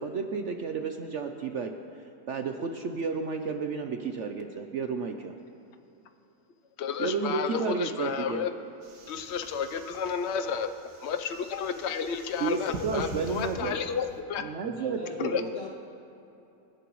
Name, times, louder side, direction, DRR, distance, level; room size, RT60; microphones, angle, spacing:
voice 1, 0.0-1.7 2.3-5.3 7.0-8.4 12.4-13.7 14.4-15.5, right 5 dB, 60° right, 5 dB, 0.8 m, -32 dB
voice 2, 6.8-8.5 9.1-10.7 11.0-14.4 15.2-15.4, left 7 dB, 60° left, 8 dB, 0.7 m, -31 dB
sound 1, 8.8-14.2, right 2 dB, 75° right, 1.9 m, -44 dB
voice 3, 14.6-15.7, left 1 dB, 35° left, -4 dB, 2.3 m, -39 dB
27.5 x 10.5 x 3.1 m, 2.9 s
omnidirectional pair, 1.8 m